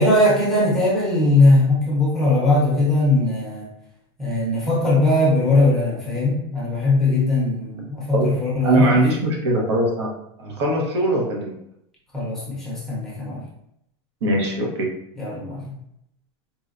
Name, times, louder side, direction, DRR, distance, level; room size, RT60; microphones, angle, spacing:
voice 1, 0.0-3.7 4.2-9.0 12.1-13.4 15.2-15.6, left 2 dB, 5° left, -7 dB, 0.7 m, -19 dB
voice 2, 8.6-10.1 10.4-11.5 14.2-14.9, right 1 dB, 85° right, -1 dB, 1.0 m, -21 dB
4.2 x 2.1 x 2.5 m, 0.77 s
supercardioid pair, 175°, 14 cm